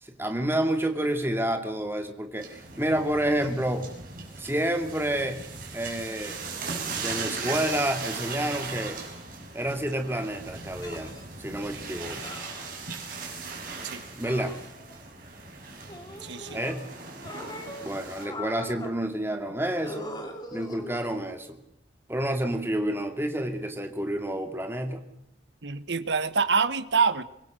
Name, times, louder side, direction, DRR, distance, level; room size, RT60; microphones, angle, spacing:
voice 1, 0.0-3.9 4.4-5.4 5.7-6.4 7.0-9.0 9.5-12.2 14.2-14.5 16.5-16.9 17.8-20.1 20.5-21.6 22.1-25.0, right 1 dB, 15° right, 6 dB, 2.3 m, -29 dB
sound 1, 2.4-18.3, right 4 dB, 50° right, 6.9 m, -38 dB
sound 2, 10.8-11.2 12.2-13.1 14.2-15.1 15.9-16.8 17.2-19.0 19.8-21.3 22.4-22.6, left 1 dB, 20° left, 3.0 m, -42 dB
voice 2, 16.2-16.6 25.6-27.2, right 5 dB, 80° right, 13 dB, 1.4 m, -26 dB
25.0 x 21.0 x 6.5 m, 0.78 s
head